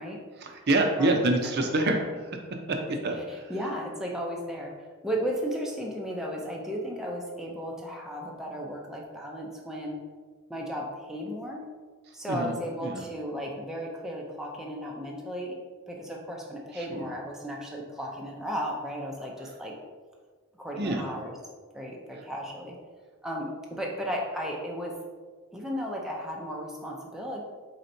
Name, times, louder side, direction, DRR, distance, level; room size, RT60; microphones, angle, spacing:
voice 1, 0.4-2.0 2.3-2.4 2.7-3.4 12.3-12.5 12.8-13.0 16.9-17.1 20.8-21.0, right 2 dB, 50° right, 3 dB, 0.5 m, -26 dB
voice 2, 1.0-1.7 3.2-4.7 5.0-10.0 10.5-11.6 12.1-15.5 15.9-19.7 20.6-21.3 21.7-22.8 23.2-24.9 25.5-27.4, equal, ahead, -2 dB, 0.4 m, -35 dB
4.2 x 4.2 x 2.6 m, 1.5 s
head